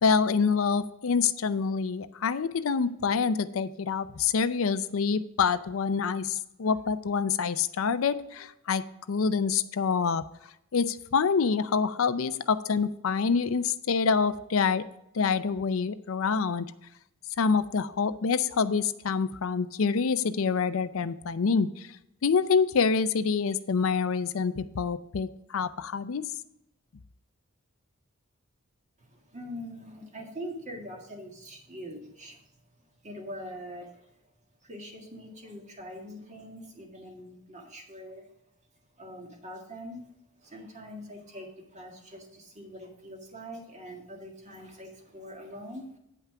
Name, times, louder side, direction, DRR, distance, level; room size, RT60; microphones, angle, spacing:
voice 1, 0.0-10.2 10.7-14.8 15.1-16.7 17.4-21.9 22.2-26.3, left 5 dB, 80° left, 13 dB, 0.5 m, -26 dB
voice 2, 29.0-32.4 33.0-34.2 34.6-38.3 39.0-40.1 40.4-46.0, equal, 35° right, 1 dB, 1.9 m, -43 dB
9.3 x 5.7 x 4.8 m, 0.82 s
head